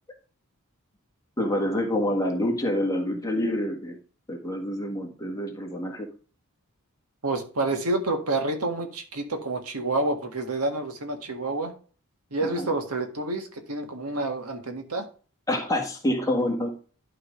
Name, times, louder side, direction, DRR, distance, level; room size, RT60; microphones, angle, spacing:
voice 1, 1.4-4.0 4.3-6.1 12.4-12.7 15.5-16.8, left 1 dB, 15° left, 2 dB, 1.6 m, -27 dB
voice 2, 7.2-11.7 12.3-15.1, right 2 dB, 85° right, 5 dB, 1.8 m, -28 dB
11.5 x 3.9 x 5.0 m, 0.38 s
head